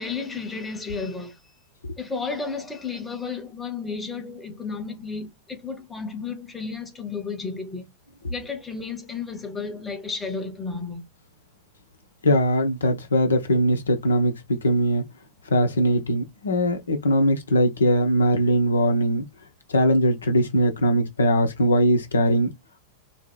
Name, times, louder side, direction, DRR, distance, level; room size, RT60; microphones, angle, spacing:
voice 1, 0.0-1.4 2.0-7.8 8.3-11.0, left 4 dB, 10° left, 1.1 m, -32 dB
voice 2, 12.2-15.1 15.5-19.2 19.7-22.5, equal, 70° left, 0.9 m, -21 dB
3.9 x 2.8 x 2.2 m
figure-of-eight pair, 90°, 0 cm